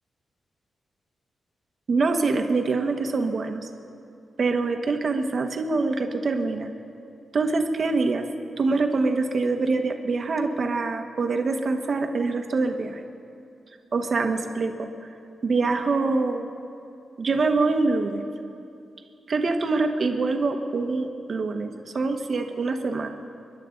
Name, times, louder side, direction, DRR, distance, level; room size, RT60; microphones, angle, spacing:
voice 1, 1.9-3.7 4.4-6.7 7.3-8.3 8.6-13.0 13.9-14.9 15.4-16.5 17.2-18.2 19.3-23.1, right 3 dB, 45° right, 5 dB, 1.2 m, -25 dB
30.0 x 11.0 x 3.9 m, 2.6 s
wide cardioid pair, 135°, 0 cm